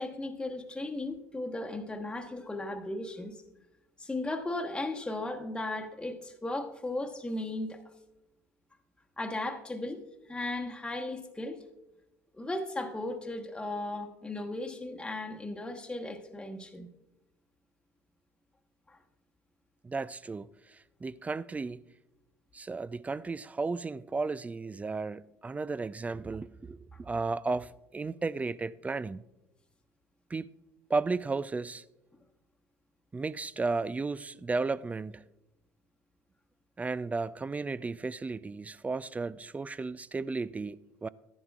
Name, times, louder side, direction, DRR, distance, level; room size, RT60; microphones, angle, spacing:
voice 1, 0.0-3.4 4.0-7.8 9.2-11.6 12.3-16.9 18.9-19.0, left 2 dB, 10° left, 1.2 m, -36 dB
voice 2, 19.8-21.8 22.5-29.2 30.3-30.5 30.9-31.8 33.1-35.2 36.8-41.1, right 3 dB, 15° right, 0.3 m, -34 dB
14.0 x 11.0 x 2.4 m
hypercardioid pair, 70°, 8 cm